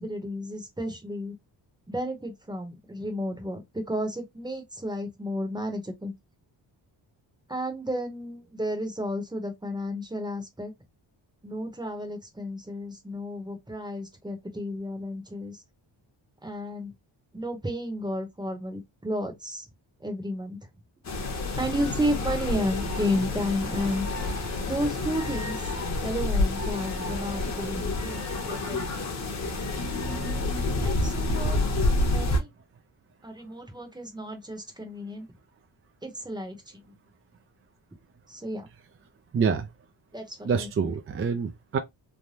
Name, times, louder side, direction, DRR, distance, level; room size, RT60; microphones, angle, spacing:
voice 1, 0.0-1.3 1.9-6.1 7.5-10.7 11.4-15.6 16.4-16.9 17.3-19.7 20.0-20.6 21.6-25.7 26.0-29.0 30.8-31.6 32.0-32.5 33.2-35.3 36.0-36.9 37.9-38.0 38.3-38.7 40.1-40.9, equal, 10° right, 0.8 m, -32 dB
sound 1, 21.0-32.4, left 2 dB, 35° left, 0.9 m, -28 dB
voice 2, 39.3-39.7 40.5-41.8, right 6 dB, 30° right, 0.4 m, -26 dB
3.3 x 2.1 x 2.6 m
wide cardioid pair, 120°, 47 cm